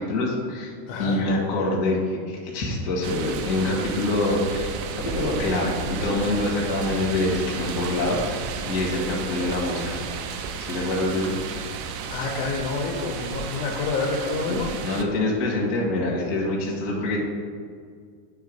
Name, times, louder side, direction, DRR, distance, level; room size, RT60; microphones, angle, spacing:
voice 1, 0.0-0.7 1.0-10.0 10.6-11.3 14.5-17.2, left 2 dB, 55° left, -3 dB, 1.0 m, -25 dB
voice 2, 0.9-1.2 12.1-14.7, left 3 dB, 75° left, 0 dB, 2.0 m, -28 dB
sound 1, 3.0-15.0, right 5 dB, 85° right, 2.2 m, -33 dB
9.3 x 3.3 x 5.1 m, 2.1 s
omnidirectional pair, 3.8 m